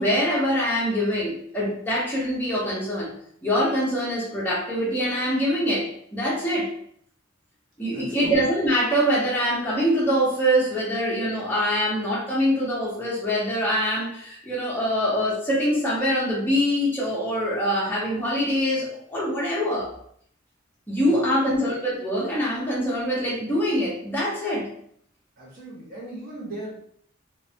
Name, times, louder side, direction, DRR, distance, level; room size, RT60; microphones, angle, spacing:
voice 1, 0.0-3.1 3.4-6.7 7.8-19.9 20.9-24.7, equal, 10° left, -6 dB, 0.8 m, -24 dB
voice 2, 7.9-8.3 21.1-21.6 25.4-26.7, right 1 dB, 45° right, -6 dB, 1.1 m, -38 dB
3.2 x 2.1 x 2.6 m, 0.64 s
head